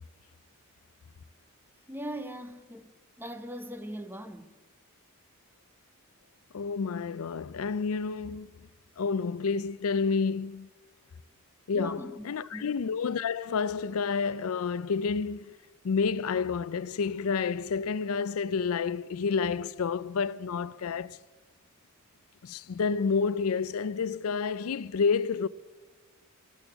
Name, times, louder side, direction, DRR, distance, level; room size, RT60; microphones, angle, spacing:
voice 1, 1.9-4.5 11.7-12.7, equal, 10° right, 0.9 m, -40 dB
voice 2, 6.5-8.5 9.0-10.7 11.7-15.6 15.8-21.2 22.4-25.5, left 5 dB, 75° left, 0.5 m, -29 dB
13.5 x 13.0 x 8.0 m
head